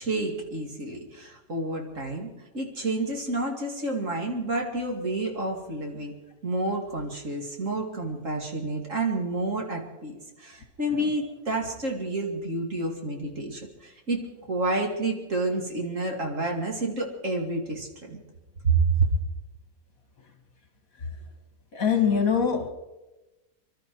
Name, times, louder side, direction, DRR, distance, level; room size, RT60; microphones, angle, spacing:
voice 1, 0.0-2.3 2.5-6.1 6.4-14.2 14.5-18.2 18.6-19.1, right 2 dB, 50° right, 1 dB, 2.8 m, -29 dB
voice 2, 21.7-22.7, left 7 dB, 60° left, 5 dB, 2.6 m, -23 dB
25.0 x 12.5 x 4.7 m, 1.1 s
omnidirectional pair, 1.7 m